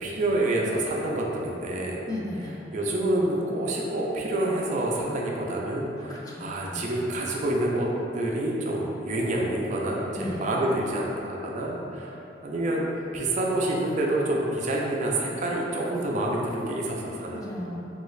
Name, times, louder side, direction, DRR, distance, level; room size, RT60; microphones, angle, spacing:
voice 1, 0.0-2.0 2.7-7.9 8.1-12.9 13.1-17.4, right 1 dB, 40° right, -2 dB, 0.3 m, -27 dB
voice 2, 2.1-2.6 6.1-6.9 10.1-10.5 17.3-17.8, left 1 dB, 20° left, -5 dB, 0.4 m, -35 dB
3.3 x 2.3 x 3.1 m, 3.0 s
head